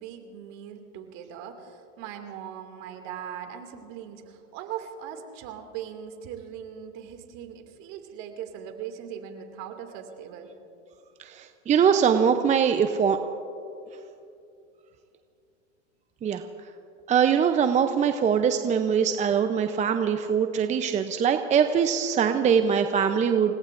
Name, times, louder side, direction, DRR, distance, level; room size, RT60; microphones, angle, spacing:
voice 1, 0.0-10.5, right 9 dB, 50° right, 5 dB, 2.4 m, -40 dB
voice 2, 11.2-13.2 16.2-16.4 17.1-23.6, right 7 dB, 20° right, 8 dB, 0.6 m, -22 dB
29.5 x 18.0 x 2.6 m, 2.6 s
hypercardioid pair, 110°, 36 cm